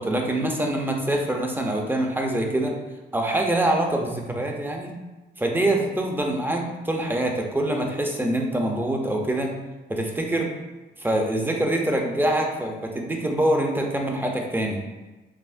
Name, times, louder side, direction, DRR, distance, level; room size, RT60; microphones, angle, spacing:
voice 1, 0.0-2.7 3.1-4.9 5.4-9.5 9.9-10.5 11.0-14.8, right 1 dB, 10° right, 1 dB, 0.6 m, -25 dB
5.6 x 2.0 x 2.5 m, 1.1 s
cardioid pair, 90°, 20 cm